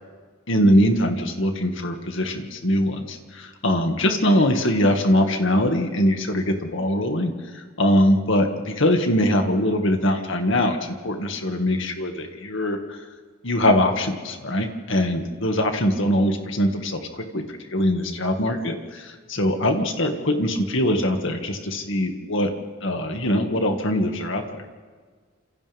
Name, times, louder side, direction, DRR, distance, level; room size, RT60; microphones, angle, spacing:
voice 1, 0.5-13.0 13.4-17.4 17.7-22.5 22.8-24.6, left 1 dB, 65° left, 4 dB, 2.2 m, -22 dB
29.5 x 27.0 x 3.7 m, 1.5 s
head